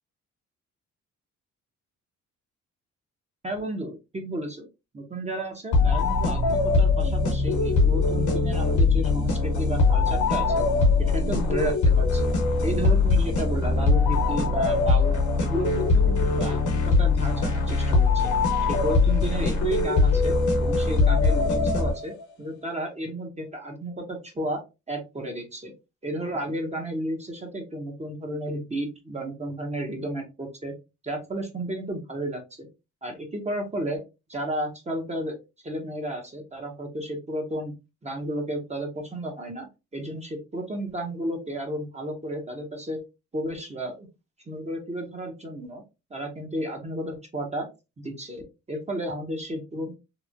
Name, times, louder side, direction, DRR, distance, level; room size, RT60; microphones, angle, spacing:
voice 1, 3.4-4.7 4.9-10.7 11.0-12.3 12.6-15.2 15.4-18.3 18.7-24.6 24.9-25.7 26.0-30.7 31.0-32.7 33.0-34.0 34.3-35.4 35.6-37.7 38.0-43.0 43.3-44.1 44.5-45.8 46.1-47.7 48.0-50.0, right 1 dB, 20° right, 2 dB, 0.7 m, -33 dB
sound 1, 5.7-22.2, left 3 dB, 75° left, 1.0 m, -22 dB
2.9 x 2.1 x 2.4 m, 0.26 s
cardioid pair, 90°, 30 cm